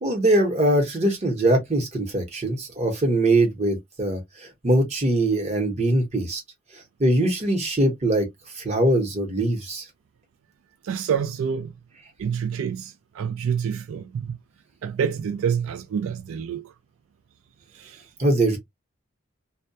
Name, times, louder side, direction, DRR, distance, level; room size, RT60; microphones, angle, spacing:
voice 1, 0.0-6.4 7.0-8.3 8.6-9.8 18.2-18.6, right 1 dB, 30° right, 0.8 m, -22 dB
voice 2, 10.8-11.7 12.2-14.4 14.8-16.7 17.7-18.0, right 7 dB, 80° right, 0.3 m, -27 dB
2.2 x 2.1 x 2.6 m
head